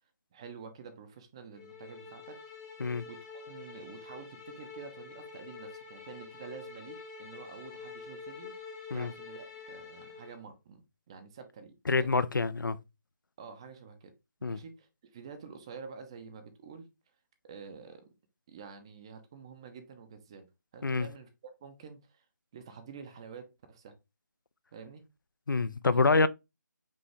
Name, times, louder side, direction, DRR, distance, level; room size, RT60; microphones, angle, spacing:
voice 1, 0.3-2.4 3.0-8.5 8.9-12.1 13.4-14.1 14.4-16.9 17.4-18.1 18.5-20.4 20.7-22.3 22.5-23.9 24.7-25.0 25.9-26.3, right 5 dB, 15° right, 0.5 m, -48 dB
sound 1, 1.5-10.4, left 5 dB, 15° left, 0.8 m, -47 dB
voice 2, 11.9-12.8 14.4-14.6 20.8-21.1 25.5-26.3, left 3 dB, 90° left, 0.5 m, -26 dB
5.2 x 2.7 x 3.2 m
figure-of-eight pair, 165°, 10 cm